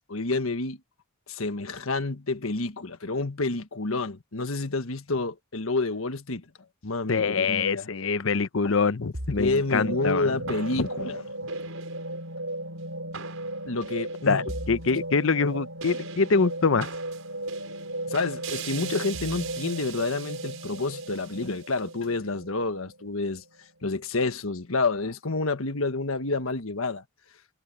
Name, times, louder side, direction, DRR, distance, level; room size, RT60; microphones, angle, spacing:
voice 1, 0.1-0.8 1.3-6.4 6.8-7.9 8.6-8.7 9.4-11.2 13.6-14.4 18.1-23.4 23.8-27.0, left 3 dB, 85° left, 1.5 m, -29 dB
voice 2, 7.1-10.4 10.8-10.9 14.3-16.9, left 4 dB, 70° left, 0.8 m, -24 dB
sound 1, 9.1-23.6, right 2 dB, 80° right, 6.0 m, -36 dB
head